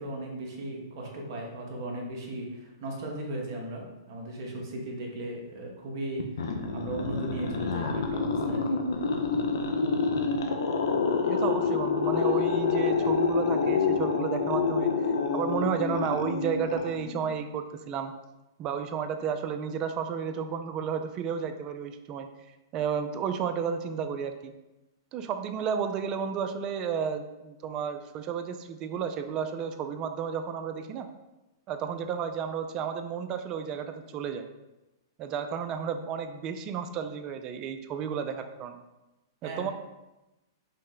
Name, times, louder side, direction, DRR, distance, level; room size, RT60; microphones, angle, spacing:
voice 1, 0.0-8.8 39.4-39.7, right 2 dB, 55° right, -1 dB, 1.1 m, -37 dB
sound 1, 6.2-17.3, left 4 dB, 75° left, 0.5 m, -27 dB
voice 2, 11.3-14.9 15.3-18.1 18.6-22.3 22.7-24.5 25.1-31.1 31.7-34.5 35.2-38.8 39.4-39.7, right 7 dB, 35° right, 8 dB, 0.4 m, -32 dB
5.4 x 2.1 x 3.7 m, 1.0 s
hypercardioid pair, 120°, 2 cm